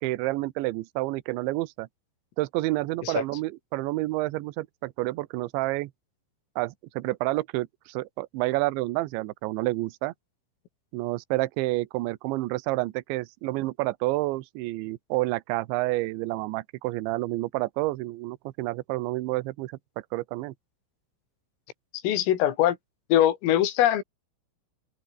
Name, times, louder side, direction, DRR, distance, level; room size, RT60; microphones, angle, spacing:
voice 1, 0.0-1.9 2.4-5.9 6.6-10.1 10.9-19.8 20.1-20.5, right 20 dB, 75° right, 3.0 m, -29 dB
voice 2, 22.0-22.8 23.1-24.0, left 12 dB, 80° left, 5.1 m, -22 dB
open air
omnidirectional pair, 5.9 m